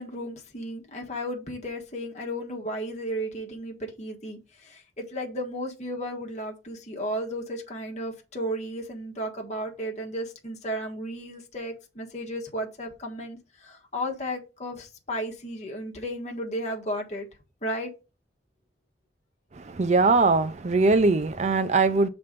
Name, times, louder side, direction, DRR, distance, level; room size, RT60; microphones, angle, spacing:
voice 1, 0.0-17.2 17.6-17.9, equal, 40° left, 1.4 m, -34 dB
voice 2, 19.5-22.1, right 3 dB, 40° right, 0.4 m, -21 dB
6.7 x 3.5 x 5.1 m
head